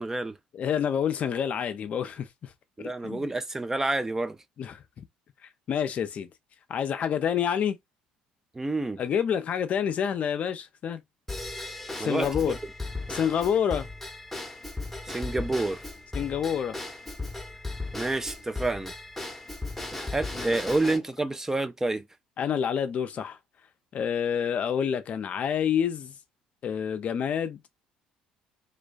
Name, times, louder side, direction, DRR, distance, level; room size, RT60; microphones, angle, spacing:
voice 1, 0.0-0.4 2.8-4.4 8.5-9.0 12.0-12.3 15.0-15.8 17.9-18.9 20.1-22.0, right 2 dB, 15° right, 0.4 m, -28 dB
voice 2, 0.5-2.5 3.0-3.3 4.6-4.8 5.7-6.3 6.7-7.8 9.0-11.0 12.0-12.6 13.1-13.9 16.1-16.8 20.3-20.5 20.9-21.0 22.4-23.4 23.9-26.1 26.6-27.6, left 8 dB, 50° left, 0.5 m, -28 dB
Drum kit / Drum / Bell, 11.3-21.0, left 2 dB, 5° left, 0.8 m, -37 dB
2.2 x 2.2 x 2.5 m
hypercardioid pair, 70°, 3 cm